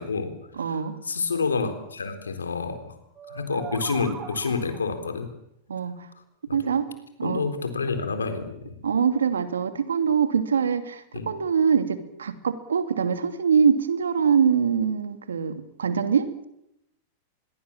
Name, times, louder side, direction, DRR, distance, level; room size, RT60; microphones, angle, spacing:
voice 1, 0.0-3.0 3.3-5.3 6.5-6.6 7.2-8.8 11.1-11.3, left 4 dB, 90° left, 8 dB, 3.9 m, -29 dB
voice 2, 0.6-1.0 5.7-6.1 6.5-6.9 7.2-7.4 8.8-16.5, right 6 dB, 85° right, 9 dB, 2.6 m, -23 dB
sound 1, 3.1-5.0, right 6 dB, 30° right, 4.0 m, -39 dB
25.5 x 22.5 x 7.4 m, 0.80 s
hypercardioid pair, 100°, 0 cm